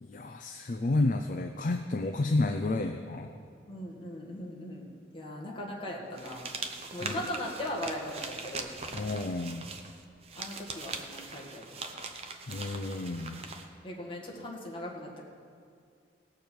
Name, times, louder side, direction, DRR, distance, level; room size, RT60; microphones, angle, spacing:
voice 1, 0.0-3.3 7.0-7.1 8.9-9.7 12.5-13.4, left 2 dB, 45° left, 6 dB, 0.4 m, -31 dB
voice 2, 3.7-6.5 6.9-8.7 10.4-11.6 13.3-13.5 13.8-15.2, left 1 dB, 30° left, -3 dB, 1.8 m, -39 dB
sound 1, 6.2-13.7, right 4 dB, 35° right, 0.7 m, -41 dB
18.0 x 6.9 x 4.6 m, 2.3 s
head